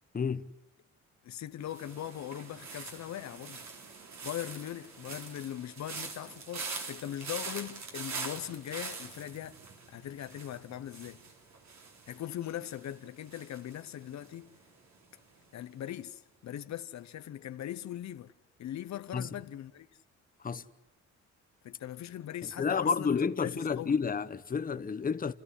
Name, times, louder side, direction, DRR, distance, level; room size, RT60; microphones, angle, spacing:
voice 1, 0.1-0.5 19.1-19.3 20.4-20.7 22.4-25.3, left 5 dB, 30° left, 1.0 m, -30 dB
voice 2, 1.2-3.6 4.2-9.6 9.9-11.2 12.1-14.5 15.5-18.3 18.6-19.9 21.6-24.0, left 11 dB, 65° left, 0.9 m, -40 dB
sound 1, 1.7-14.7 15.0-15.4, right 4 dB, 65° right, 4.1 m, -44 dB
29.5 x 14.0 x 10.0 m
cardioid pair, 90°, 30 cm